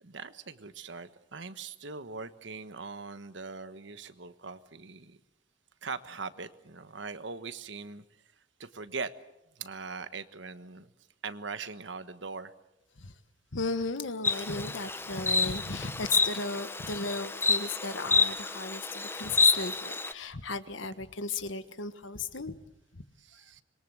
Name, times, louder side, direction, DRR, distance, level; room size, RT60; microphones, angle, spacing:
voice 1, 0.0-5.2 5.8-8.0 8.6-9.1 9.5-10.9 11.2-12.5 23.3-23.6, right 4 dB, 65° right, 12 dB, 1.3 m, -41 dB
voice 2, 13.5-22.6 22.9-23.0, left 4 dB, 75° left, 12 dB, 1.4 m, -35 dB
Insect, 14.2-20.1, left 4 dB, 10° left, 0.9 m, -29 dB
26.0 x 22.5 x 7.9 m, 0.89 s
head